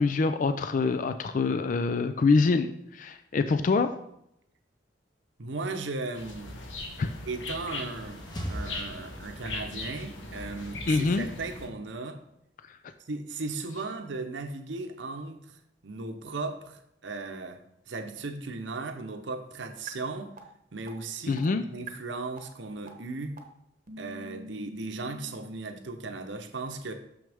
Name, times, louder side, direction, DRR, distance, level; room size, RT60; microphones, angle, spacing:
voice 1, 0.0-3.9 7.0-7.1 10.9-11.3 21.3-21.6, left 4 dB, 45° left, 10 dB, 0.4 m, -25 dB
voice 2, 5.4-6.5 7.3-12.2 13.0-20.3 20.7-23.4 24.0-26.9, right 3 dB, 80° right, 6 dB, 0.8 m, -37 dB
sound 1, 6.1-11.7, left 2 dB, 85° left, 1.1 m, -39 dB
sound 2, 7.6-9.8, equal, 25° left, 1.0 m, -40 dB
sound 3, 19.9-20.0 20.4-20.5 20.9-21.0 21.4-21.5 21.9-22.0 22.4-22.5 22.9-23.0 23.4-23.5 23.9-25.6, right 1 dB, 45° right, 0.9 m, -44 dB
6.5 x 6.1 x 3.5 m, 0.77 s
head